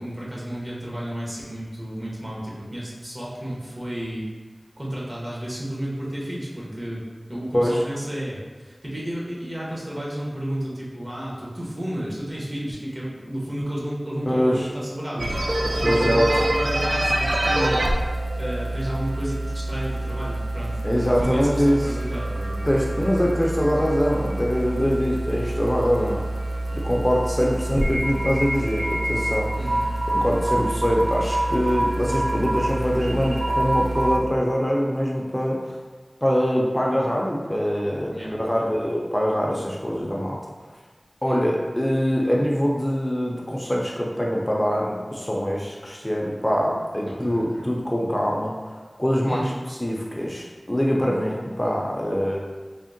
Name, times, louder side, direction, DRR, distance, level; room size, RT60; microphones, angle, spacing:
voice 1, 0.0-4.2 4.8-7.0 7.3-17.9 18.4-23.0 26.0-26.1 29.6-29.8 38.1-38.6 41.2-41.5 47.1-47.6 49.3-49.6, right 1 dB, 40° right, -6 dB, 0.9 m, -32 dB
voice 2, 14.3-14.7 15.7-16.3 20.8-21.9 22.6-26.2 26.8-29.5 30.1-35.8 36.2-38.1 38.4-40.4 41.2-48.5 49.0-52.4, equal, 20° left, -2 dB, 0.4 m, -23 dB
sound 1, 15.2-34.2, right 1 dB, 65° right, 0.3 m, -26 dB
3.4 x 2.1 x 2.6 m, 1.5 s
wide cardioid pair, 50°, 0 cm